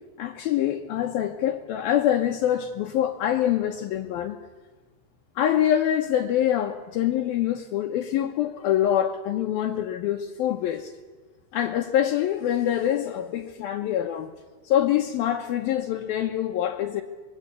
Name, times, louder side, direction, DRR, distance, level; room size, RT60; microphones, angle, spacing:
voice 1, 0.2-4.4 5.4-10.9 11.5-14.3 14.6-17.0, left 11 dB, 70° left, 2.4 m, -25 dB
26.0 x 22.5 x 8.4 m
omnidirectional pair, 5.5 m